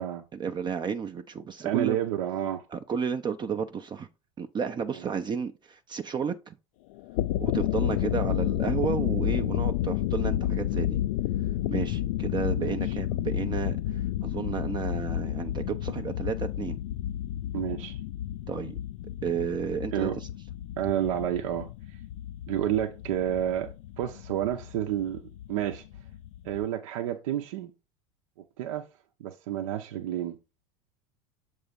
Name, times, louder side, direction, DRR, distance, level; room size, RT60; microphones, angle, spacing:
voice 1, 0.3-2.0 2.7-4.1 4.4-6.5 7.4-11.0 11.7-16.8 18.5-18.8 19.2-20.1, right 7 dB, 25° right, 0.5 m, -32 dB
voice 2, 1.6-2.7 12.6-13.0 17.5-18.0 19.9-20.2 20.8-22.0 22.5-25.2 25.5-25.8 26.4-27.7 28.6-28.9 29.2-30.4, right 11 dB, 70° right, 0.7 m, -30 dB
sound 1, 7.0-26.7, left 12 dB, 70° left, 0.4 m, -31 dB
6.9 x 3.4 x 5.2 m
hypercardioid pair, 90°, 17 cm